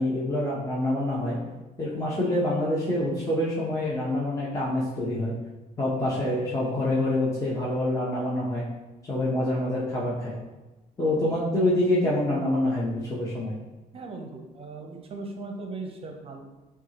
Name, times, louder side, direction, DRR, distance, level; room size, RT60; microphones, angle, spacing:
voice 1, 0.0-1.4 1.8-5.3 5.8-8.6 9.1-10.3 11.0-13.6, left 1 dB, 20° left, -6 dB, 0.8 m, -26 dB
voice 2, 13.9-16.4, right 3 dB, 35° right, 3 dB, 0.7 m, -38 dB
5.6 x 2.4 x 2.9 m, 1.1 s
cardioid pair, 110°, 17 cm